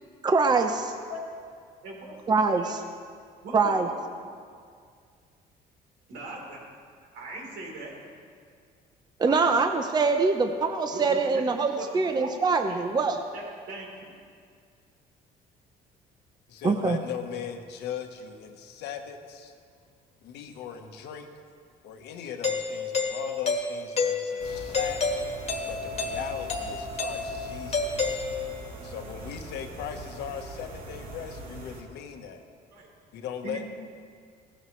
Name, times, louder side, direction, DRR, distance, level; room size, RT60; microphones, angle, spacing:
voice 1, 0.2-0.8 2.3-2.8 3.5-3.9 9.2-13.2 16.6-17.0, right 4 dB, 25° right, 6 dB, 0.7 m, -24 dB
voice 2, 1.8-2.7 3.4-3.9 4.3-4.4 6.1-6.6 7.1-7.9 9.3-9.5 10.9-11.4 11.7-11.9 12.2-12.3 12.6-12.8 13.3-14.1 32.7-32.9 33.4-33.7, right 2 dB, 75° right, -2 dB, 3.9 m, -40 dB
voice 3, 16.5-19.5 20.2-21.3 21.8-25.3 25.7-28.2 28.8-32.4 33.1-33.7, left 8 dB, 80° left, 5 dB, 1.2 m, -38 dB
Doorbell, 22.4-28.8, left 4 dB, 40° left, 1.5 m, -30 dB
sound 1, 24.4-31.8, right 2 dB, 60° right, 2.4 m, -42 dB
17.0 x 13.0 x 3.2 m, 2.2 s
cardioid pair, 110°, 17 cm